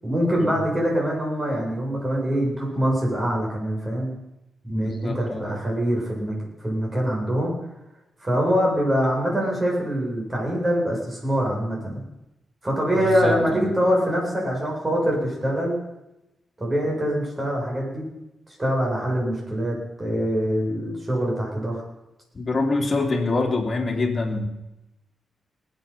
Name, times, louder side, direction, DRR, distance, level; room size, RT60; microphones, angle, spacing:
voice 1, 0.0-4.2 4.6-7.5 8.2-12.0 12.6-15.8 16.6-18.1 18.6-21.8, equal, 20° right, -2 dB, 7.6 m, -24 dB
voice 2, 4.7-5.5 13.0-13.6 22.3-24.5, left 3 dB, 40° left, 1 dB, 3.2 m, -25 dB
20.0 x 8.7 x 5.9 m, 0.91 s
cardioid pair, 85°, 0 cm